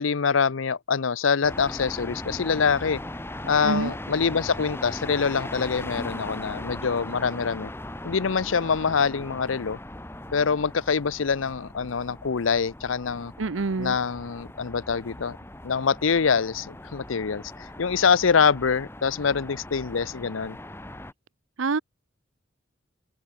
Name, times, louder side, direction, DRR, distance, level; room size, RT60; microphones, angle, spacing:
voice 1, 0.0-3.0 3.5-7.7 8.0-9.8 10.3-13.3 13.8-15.4 15.6-20.6, left 5 dB, 90° left, 0.7 m, -25 dB
sound 1, 1.4-21.1, left 1 dB, 10° left, 2.0 m, -39 dB
voice 2, 13.4-14.0 21.6-21.8, right 3 dB, 85° right, 0.8 m, -26 dB
open air
head